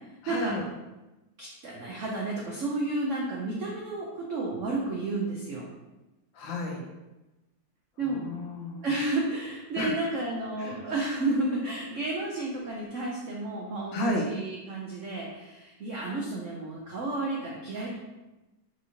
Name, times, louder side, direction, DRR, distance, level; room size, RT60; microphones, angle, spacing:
voice 1, 0.2-0.7 6.3-6.8 8.0-8.9 9.8-9.9 10.6-10.8 13.9-14.2, left 1 dB, 80° left, 1 dB, 1.4 m, -32 dB
voice 2, 1.4-5.7 8.0-8.2 8.8-18.0, right 2 dB, 80° right, -3 dB, 0.6 m, -31 dB
5.9 x 2.9 x 2.8 m, 1.0 s
omnidirectional pair, 2.1 m